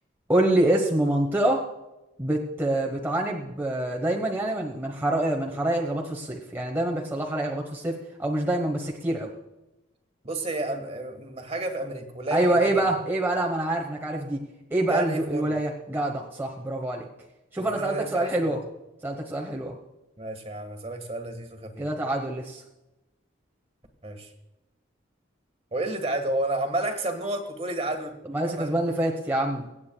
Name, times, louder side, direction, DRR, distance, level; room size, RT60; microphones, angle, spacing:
voice 1, 0.3-1.6 2.2-9.3 12.3-14.4 14.7-17.1 17.5-18.6 19.0-19.7 21.8-22.6 28.3-29.7, right 1 dB, 10° right, -1 dB, 1.0 m, -26 dB
voice 2, 10.2-12.9 14.9-15.6 17.6-18.5 20.2-21.9 24.0-24.3 25.7-28.1 28.5-28.7, right 2 dB, 30° right, 6 dB, 1.5 m, -31 dB
23.5 x 8.6 x 2.3 m, 0.97 s
head